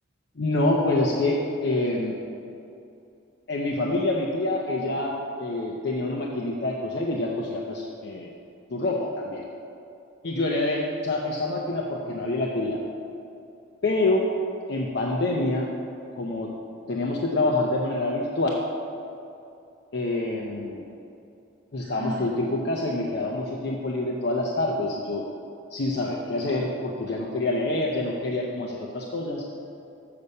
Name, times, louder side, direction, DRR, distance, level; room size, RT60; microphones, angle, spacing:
voice 1, 0.4-2.1 3.5-5.1 5.4-8.3 8.7-9.4 10.2-12.8 13.8-14.3 14.7-15.7 16.2-16.5 16.9-18.6 19.9-20.8 21.7-25.2 25.7-29.5, left 2 dB, 60° left, -1 dB, 0.7 m, -26 dB
Sigh, 21.8-22.4, equal, 50° right, 0.7 m, -36 dB
6.8 x 6.8 x 5.4 m, 2.7 s
head